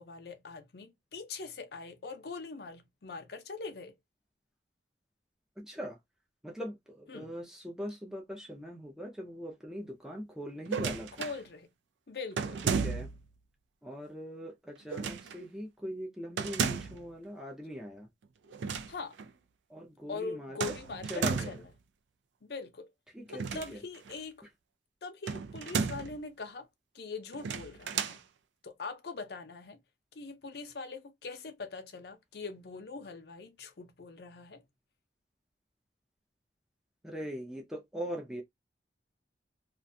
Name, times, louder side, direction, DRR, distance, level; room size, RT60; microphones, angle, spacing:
voice 1, 0.0-4.0 7.1-7.3 11.2-11.7 12.1-12.6 18.9-19.2 20.1-21.7 22.4-22.9 23.3-24.5 25.0-26.7 26.9-28.2 28.6-29.8 30.1-34.6, left 4 dB, 60° left, 0.5 m, -42 dB
voice 2, 5.6-6.0 6.4-11.3 12.6-13.1 13.8-18.1 19.7-20.8 21.0-21.6 23.1-23.8 37.0-38.4, equal, 5° right, 0.5 m, -41 dB
sound 1, 10.6-11.4 12.4-13.3 14.9-15.4 16.4-17.1 18.5-18.9 19.2-19.3 20.6-21.7 23.3-24.1 25.3-26.2 27.3-28.2, right 5 dB, 85° right, 0.4 m, -33 dB
2.4 x 2.2 x 2.6 m
head